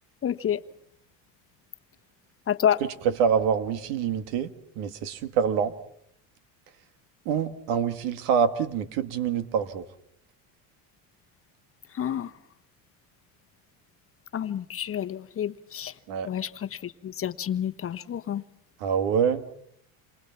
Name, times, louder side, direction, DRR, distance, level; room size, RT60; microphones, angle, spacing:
voice 1, 0.2-0.6 2.5-2.8 11.9-12.3 14.3-15.9 16.2-18.4, left 9 dB, 35° left, 1.1 m, -29 dB
voice 2, 3.0-4.5 4.8-5.7 7.3-9.9 16.1-16.3 18.8-19.4, right 7 dB, 80° right, 2.0 m, -25 dB
28.5 x 23.5 x 5.9 m
cardioid pair, 120°, 41 cm